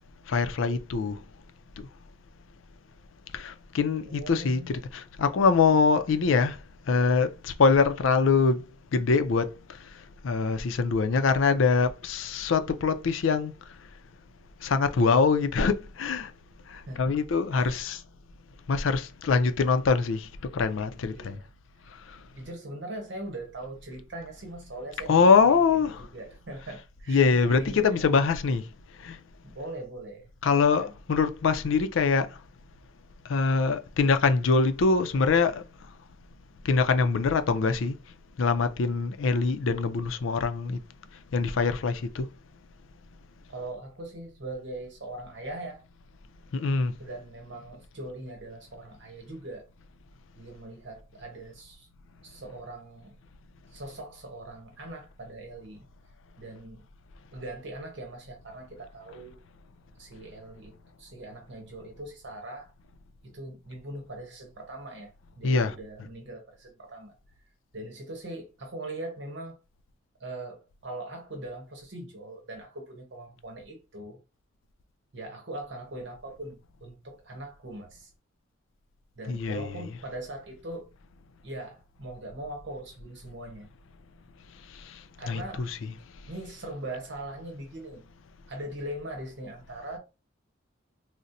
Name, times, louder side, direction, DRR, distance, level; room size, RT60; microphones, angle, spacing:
voice 1, 0.3-1.2 1.8-1.9 3.3-8.6 8.9-13.5 14.6-16.3 16.7-18.0 18.7-21.4 21.9-22.2 25.1-26.1 27.1-28.7 29.0-29.2 30.4-32.4 33.2-35.7 36.6-38.0 38.4-40.8 41.3-42.3 46.5-46.9 65.4-65.8 79.2-79.9 84.7-86.0, left 4 dB, 85° left, 0.4 m, -24 dB
voice 2, 4.1-4.7 16.9-17.2 17.5-17.9 21.1-21.4 22.3-28.1 29.4-30.9 43.5-45.8 47.0-49.7 50.3-51.9 52.2-53.2 53.7-55.8 56.4-56.9 57.3-59.4 60.0-62.7 63.2-67.1 67.7-69.6 70.2-74.2 75.1-78.1 79.2-80.9 81.4-83.7 85.2-85.7 86.3-88.0 88.5-90.0, right 1 dB, 65° right, 0.9 m, -41 dB
4.0 x 2.1 x 2.5 m
head